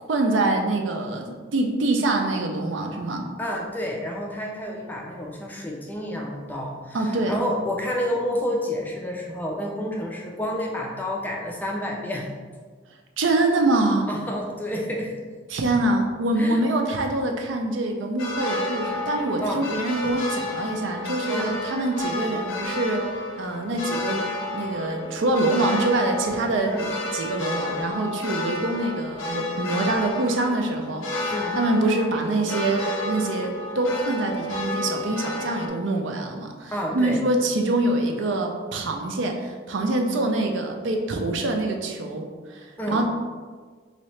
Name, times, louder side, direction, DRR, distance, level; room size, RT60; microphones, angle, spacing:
voice 1, 0.1-3.2 6.9-7.3 13.2-14.1 15.5-23.1 23.4-24.2 24.5-26.7 27.1-43.0, right 2 dB, 70° right, 3 dB, 0.5 m, -25 dB
voice 2, 3.4-12.3 14.1-15.1 16.4-16.6 19.4-19.7 20.0-20.1 21.3-21.6 26.7-26.9 31.3-31.6 36.7-37.2 42.8-43.0, equal, 10° left, -1 dB, 0.3 m, -29 dB
sound 1, 18.2-35.7, left 1 dB, 75° left, 0.6 m, -31 dB
3.9 x 2.7 x 3.2 m, 1.5 s
head